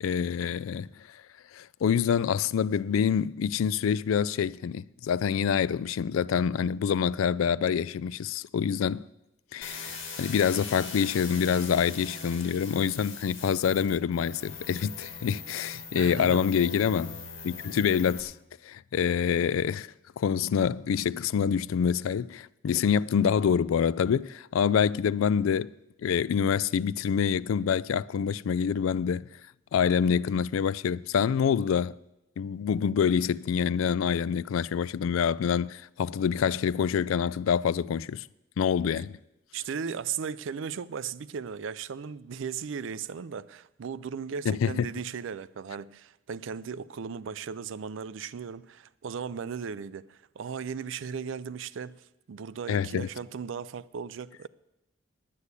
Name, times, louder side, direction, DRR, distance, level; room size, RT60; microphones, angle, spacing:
voice 1, 0.0-0.9 1.5-9.0 9.5-17.2 17.4-18.3 18.6-25.7 26.0-29.3 29.7-31.9 32.4-38.3 38.6-39.2 44.5-44.9 52.7-53.1, left 7 dB, 90° left, 0.3 m, -26 dB
sound 1, 9.6-18.2, left 4 dB, 70° left, 2.3 m, -41 dB
voice 2, 15.9-16.4 39.5-54.5, right 6 dB, 75° right, 0.4 m, -37 dB
9.9 x 9.4 x 8.2 m
head